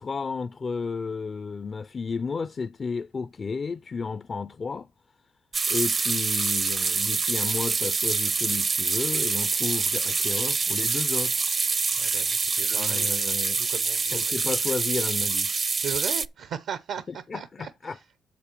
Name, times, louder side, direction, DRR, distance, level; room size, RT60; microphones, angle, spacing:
voice 1, 0.0-4.9 5.7-11.4 12.6-13.6 14.1-15.5 17.3-18.0, left 5 dB, 35° left, 0.4 m, -32 dB
sound 1, 5.5-16.3, right 4 dB, 35° right, 0.5 m, -26 dB
voice 2, 12.0-13.2 13.6-14.5 15.8-18.0, right 8 dB, 75° right, 0.6 m, -37 dB
7.0 x 6.8 x 4.5 m
cardioid pair, 90°, 0 cm